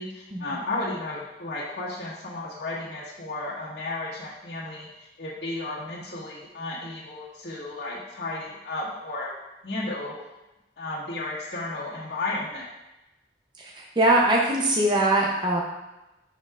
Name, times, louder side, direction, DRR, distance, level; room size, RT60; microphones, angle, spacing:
voice 1, 0.0-9.4 9.6-10.1 10.8-12.6, left 2 dB, 75° left, -7 dB, 1.6 m, -33 dB
voice 2, 13.6-15.6, right 1 dB, 25° right, -2 dB, 0.6 m, -22 dB
10.5 x 4.4 x 2.4 m, 0.99 s
head